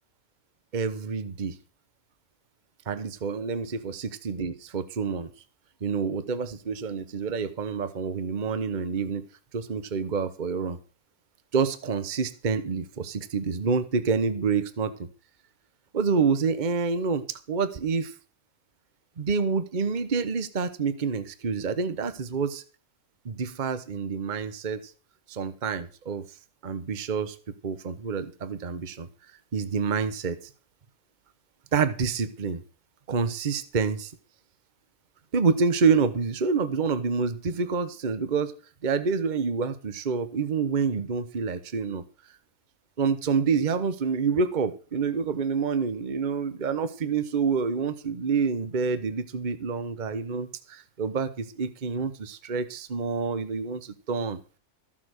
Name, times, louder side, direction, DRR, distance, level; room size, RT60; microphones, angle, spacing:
voice 1, 0.7-1.6 2.9-5.3 5.8-9.3 9.5-10.8 11.5-15.1 15.9-18.1 19.2-22.6 23.2-24.8 25.3-26.2 26.6-27.4 27.6-29.1 29.5-30.4 31.7-32.6 33.1-34.1 35.3-38.5 38.8-42.0 43.0-54.4, right 5 dB, 35° right, 12 dB, 1.1 m, -27 dB
14.5 x 7.4 x 6.4 m, 0.37 s
omnidirectional pair, 1.5 m